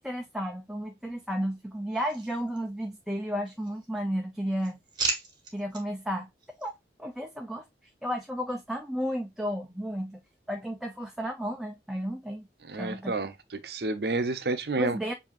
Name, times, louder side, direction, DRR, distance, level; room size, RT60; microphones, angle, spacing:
voice 1, 0.0-4.8 5.5-6.3 6.6-6.7 7.0-7.6 8.0-10.2 10.5-12.5 12.8-13.1 14.8-15.1, equal, ahead, 0.5 m, -33 dB
sound 1, 1.9-3.0 3.4-4.1 4.4-5.8 6.4-6.7, right 4 dB, 25° right, 1.1 m, -36 dB
voice 2, 12.6-15.0, right 3 dB, 60° right, 0.7 m, -30 dB
7.3 x 2.8 x 2.6 m
head